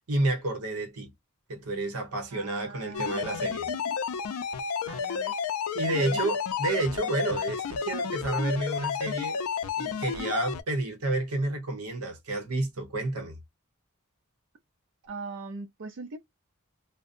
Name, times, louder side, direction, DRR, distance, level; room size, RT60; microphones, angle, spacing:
voice 1, 0.1-1.1 1.5-3.7 5.7-9.4 9.8-13.4, right 2 dB, 90° right, 0.8 m, -30 dB
voice 2, 2.3-4.0 4.9-5.4 5.8-6.2 15.1-16.2, right 3 dB, 60° right, 0.4 m, -41 dB
sound 1, 2.9-10.6, left 6 dB, 80° left, 0.4 m, -31 dB
2.6 x 2.0 x 2.5 m
head